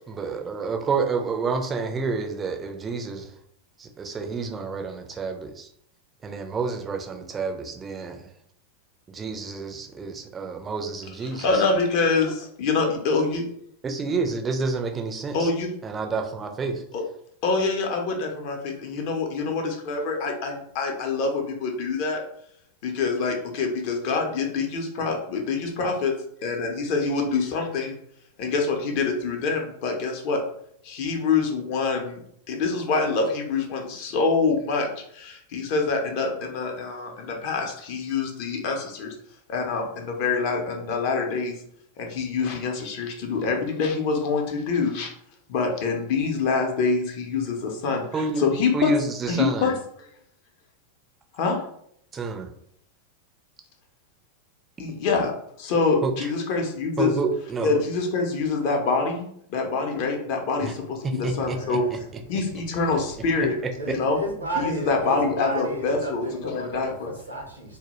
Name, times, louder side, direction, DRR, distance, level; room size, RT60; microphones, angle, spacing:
voice 1, 0.1-3.4 3.8-5.7 6.2-8.3 9.1-11.6 13.8-15.5 15.8-16.8 48.1-49.7 52.1-52.5 56.0-56.3 57.0-57.8 60.6-60.7 61.0-62.0, right 4 dB, 20° right, 0.4 m, -29 dB
voice 2, 11.4-13.4 15.3-15.7 16.9-17.0 17.4-22.2 22.8-26.1 26.4-27.9 28.4-30.4 30.8-32.2 32.5-39.2 39.5-41.6 42.0-45.1 45.5-48.1 48.4-48.9 49.3-49.7 51.3-51.6 54.8-55.3 55.6-57.1 57.6-61.9 62.3-63.5 63.9-64.2 64.6-67.1, left 4 dB, 45° left, 0.5 m, -25 dB
voice 3, 61.4-62.0 63.8-67.8, right 1 dB, 80° right, 0.6 m, -33 dB
2.1 x 2.0 x 2.9 m
figure-of-eight pair, 90°, 0 cm